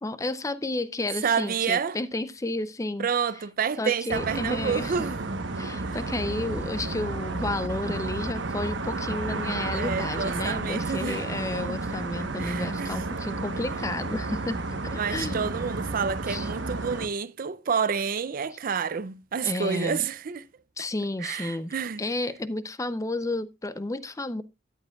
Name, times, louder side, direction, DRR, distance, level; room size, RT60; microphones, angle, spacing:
voice 1, 0.0-3.1 3.8-5.0 5.6-15.5 16.3-16.5 19.4-20.1 20.8-21.7 22.0-24.4, left 2 dB, 15° left, 0.5 m, -32 dB
voice 2, 1.2-2.0 3.0-5.4 5.8-6.0 9.7-11.2 12.4-13.3 14.9-20.5 21.2-22.0, right 6 dB, 50° right, 0.5 m, -29 dB
sound 1, 4.1-17.1, right 3 dB, 80° right, 1.1 m, -32 dB
13.0 x 9.9 x 2.3 m
head